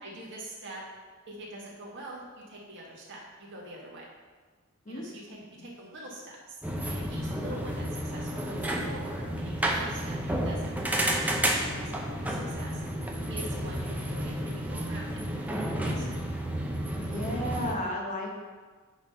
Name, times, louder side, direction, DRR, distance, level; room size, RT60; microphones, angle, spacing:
voice 1, 0.0-0.8 1.3-4.1 4.9-6.6 6.9-10.7 11.2-12.8 13.3-16.2, right 1 dB, 60° right, -4 dB, 2.0 m, -45 dB
sound 1, 6.6-17.7, right 1 dB, 5° right, 0.7 m, -31 dB
voice 2, 16.9-18.4, left 1 dB, 35° left, -1 dB, 1.3 m, -33 dB
8.5 x 3.9 x 5.7 m, 1.4 s
head